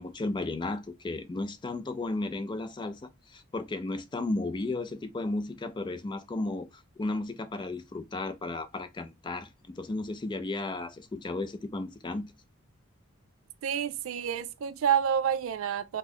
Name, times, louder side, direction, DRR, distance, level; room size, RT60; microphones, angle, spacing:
voice 1, 0.0-12.3, left 2 dB, 20° left, 0.3 m, -34 dB
voice 2, 13.6-16.0, right 8 dB, 70° right, 0.4 m, -28 dB
3.0 x 2.0 x 3.7 m
head